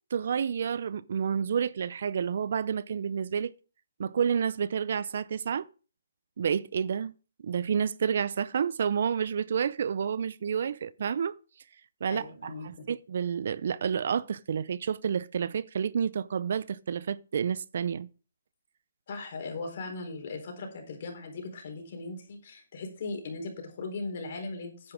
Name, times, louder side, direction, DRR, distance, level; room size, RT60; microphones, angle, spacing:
voice 1, 0.1-3.5 4.0-5.7 6.4-7.1 7.4-11.3 12.0-18.1, right 7 dB, 55° right, 0.5 m, -29 dB
voice 2, 12.1-12.9 19.1-24.9, left 3 dB, 50° left, 4.1 m, -38 dB
9.8 x 9.5 x 3.8 m
hypercardioid pair, 155°, 0 cm